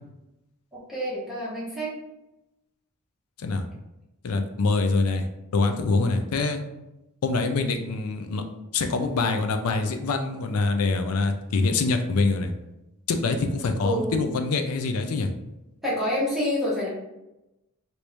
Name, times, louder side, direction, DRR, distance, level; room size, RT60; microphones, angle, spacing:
voice 1, 0.7-1.9 13.8-14.3 15.8-16.9, equal, ahead, -8 dB, 1.1 m, -27 dB
voice 2, 4.2-5.3 5.5-6.6 7.2-8.4 8.7-12.5 13.1-15.3, left 3 dB, 75° left, 6 dB, 0.4 m, -25 dB
3.0 x 2.6 x 3.3 m, 0.94 s
head